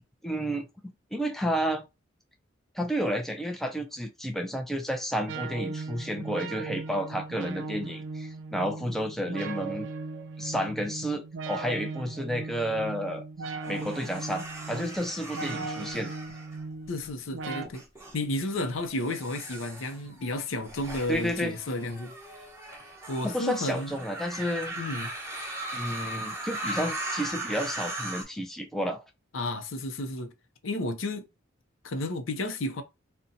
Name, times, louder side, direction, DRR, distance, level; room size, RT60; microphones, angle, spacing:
voice 1, 0.2-0.7 1.1-1.9 2.7-9.9 10.4-13.2 13.7-16.1 21.1-21.6 23.2-24.8 25.7-29.0, equal, ahead, 0.4 m, -31 dB
sound 1, 5.3-17.7, right 3 dB, 70° right, 0.4 m, -38 dB
sound 2, 13.6-17.1 17.6-18.1 18.9-28.2, right 1 dB, 15° right, 0.9 m, -38 dB
voice 2, 16.9-17.8 18.1-22.1 23.1-24.0 24.8-25.1 29.3-30.3 30.6-31.3 31.8-32.8, left 2 dB, 85° left, 0.6 m, -32 dB
2.7 x 2.2 x 3.8 m
head